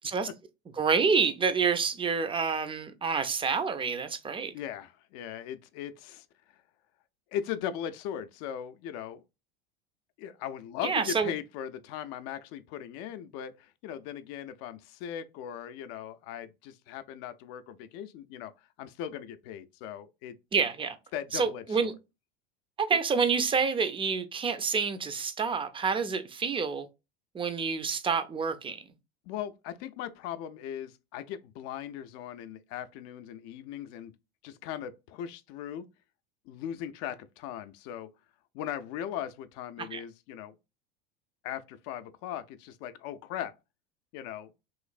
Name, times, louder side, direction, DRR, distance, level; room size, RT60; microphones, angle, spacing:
voice 1, 0.8-4.5 10.8-11.3 20.5-21.0 21.3-21.9 22.8-26.9 27.3-28.8 39.9-40.0, right 5 dB, 15° right, 0.5 m, -28 dB
voice 2, 4.5-6.2 7.3-9.2 10.2-18.5 18.8-20.4 21.1-21.9 29.3-34.1 34.4-35.9 36.5-38.1 38.5-40.5 41.4-43.5 44.1-44.5, left 10 dB, 55° left, 0.5 m, -38 dB
3.1 x 3.0 x 2.4 m
hypercardioid pair, 85°, 30 cm